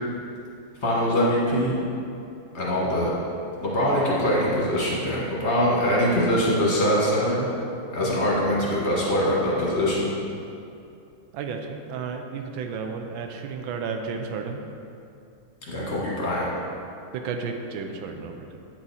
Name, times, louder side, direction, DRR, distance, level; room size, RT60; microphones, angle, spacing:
voice 1, 0.8-1.7 2.5-3.1 3.6-7.5 7.9-10.1 15.7-16.5, equal, 35° left, -6 dB, 1.3 m, -23 dB
voice 2, 11.3-14.6 17.1-18.6, right 5 dB, 75° right, 4 dB, 1.3 m, -32 dB
8.8 x 4.3 x 4.1 m, 2.6 s
omnidirectional pair, 2.3 m